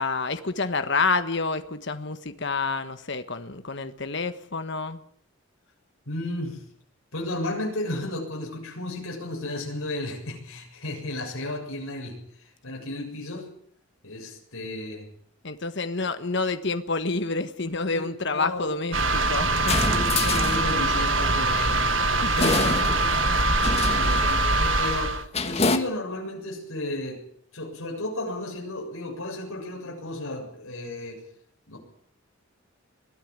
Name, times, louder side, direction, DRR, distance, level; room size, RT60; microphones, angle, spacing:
voice 1, 0.0-5.0 15.4-19.8 22.1-22.7 23.9-24.5, left 3 dB, 55° left, 10 dB, 1.4 m, -29 dB
voice 2, 6.1-6.6 7.1-13.5 14.0-15.1 17.9-18.7 19.4-21.8 22.2-23.3 23.9-27.2 27.5-31.2 31.7-31.8, left 1 dB, 75° left, -1 dB, 7.3 m, -33 dB
sound 1, 18.9-25.2, right 2 dB, 60° right, 1.6 m, -23 dB
sound 2, 19.6-21.1 22.4-23.3 23.6-24.5 25.3-25.8, left 3 dB, 30° left, 1.6 m, -27 dB
22.5 x 14.0 x 9.7 m, 0.64 s
head